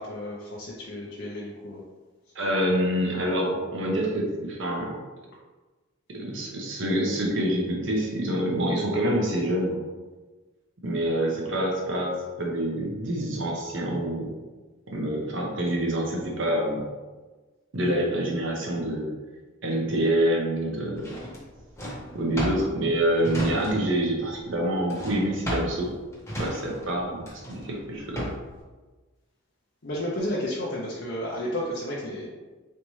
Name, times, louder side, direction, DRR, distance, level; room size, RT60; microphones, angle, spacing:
voice 1, 0.0-1.8 29.8-32.3, left 1 dB, 55° left, -4 dB, 0.6 m, -32 dB
voice 2, 2.3-5.0 6.1-9.8 10.8-14.3 14.9-16.9 17.7-19.1 19.6-21.1 22.1-25.9 26.4-28.3, right 1 dB, 65° right, -1 dB, 0.9 m, -26 dB
Drawer open or close, 21.0-24.1 24.3-28.6, equal, 15° left, 0.9 m, -34 dB
4.0 x 3.3 x 3.1 m, 1.3 s
head